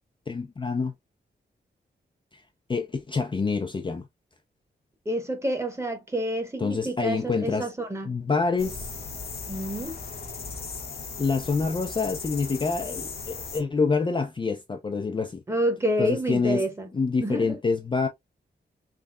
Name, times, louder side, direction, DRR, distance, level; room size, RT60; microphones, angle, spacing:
voice 1, 0.3-0.9 2.3-2.4 2.7-4.0 6.6-7.7 8.1-8.9 11.2-15.4 16.0-16.6 16.9-18.1, left 4 dB, 25° left, 0.4 m, -26 dB
voice 2, 5.0-8.2 9.5-10.0 15.5-16.9 17.2-17.6, right 1 dB, 15° right, 1.0 m, -28 dB
sound 1, 8.6-13.6, left 4 dB, 60° left, 0.9 m, -37 dB
3.6 x 3.2 x 2.4 m
wide cardioid pair, 140°, 18 cm